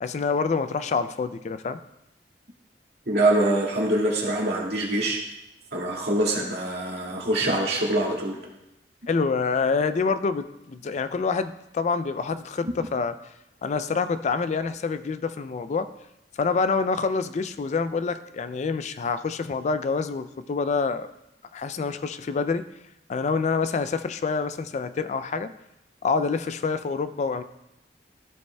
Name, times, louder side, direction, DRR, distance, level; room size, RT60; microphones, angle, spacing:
voice 1, 0.0-1.8 7.4-7.5 9.1-13.2 13.6-15.9 16.4-21.1 21.5-22.7 23.1-25.5 26.0-27.4, left 4 dB, 40° left, 12 dB, 0.3 m, -27 dB
voice 2, 3.1-5.2 5.7-8.4, right 1 dB, 65° right, -3 dB, 2.0 m, -24 dB
14.5 x 5.2 x 2.2 m, 0.86 s
head